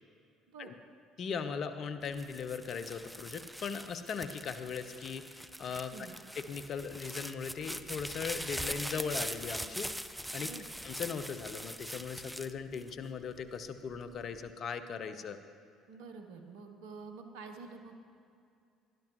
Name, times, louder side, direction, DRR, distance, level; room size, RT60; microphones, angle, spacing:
voice 1, 1.2-6.1 6.4-9.9 10.3-10.5 10.8-15.4, left 6 dB, 50° left, 10 dB, 0.8 m, -39 dB
sound 1, 2.0-13.4 13.9-14.5, equal, ahead, 0.5 m, -42 dB
voice 2, 15.9-17.9, right 4 dB, 75° right, 5 dB, 0.9 m, -48 dB
17.0 x 12.0 x 3.1 m, 2.4 s
hypercardioid pair, 60°, 0 cm